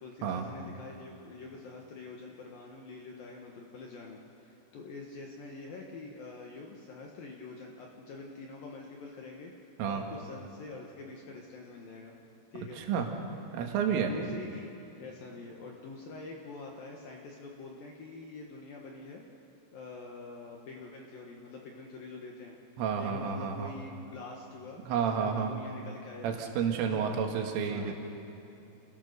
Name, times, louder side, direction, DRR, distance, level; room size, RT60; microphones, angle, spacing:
voice 1, 0.0-12.2 12.5-12.8 14.0-14.7 15.0-19.2 19.7-22.6 23.0-24.9 25.2-26.4 26.8-27.2 27.7-27.9, left 3 dB, 65° left, 0 dB, 2.5 m, -45 dB
voice 2, 12.8-13.1 13.5-14.1 22.8-23.7 24.9-25.6 26.2-27.9, right 7 dB, 85° right, 3 dB, 4.4 m, -30 dB
28.5 x 17.0 x 6.8 m, 3.0 s
omnidirectional pair, 5.6 m